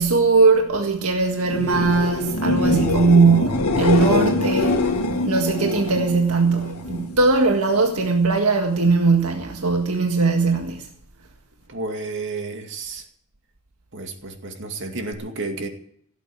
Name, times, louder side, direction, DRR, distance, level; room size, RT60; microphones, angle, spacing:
voice 1, 0.0-4.9 5.3-10.9, right 4 dB, 75° right, 1.8 m, -19 dB
sound 1, 1.4-7.1 7.5-8.1 15.1-15.2, left 2 dB, 80° left, 1.9 m, -23 dB
voice 2, 11.7-13.0 13.9-15.7, right 3 dB, 60° right, 2.3 m, -31 dB
17.0 x 8.3 x 8.8 m
head